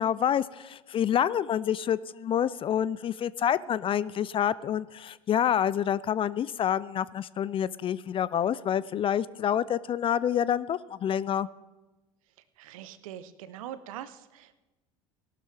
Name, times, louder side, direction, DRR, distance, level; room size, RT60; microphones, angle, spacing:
voice 1, 0.0-11.5, left 9 dB, 30° left, 19 dB, 0.4 m, -27 dB
voice 2, 12.6-14.6, right 11 dB, 70° right, 13 dB, 0.9 m, -42 dB
17.5 x 12.0 x 3.5 m, 1.1 s
hypercardioid pair, 80°, 18 cm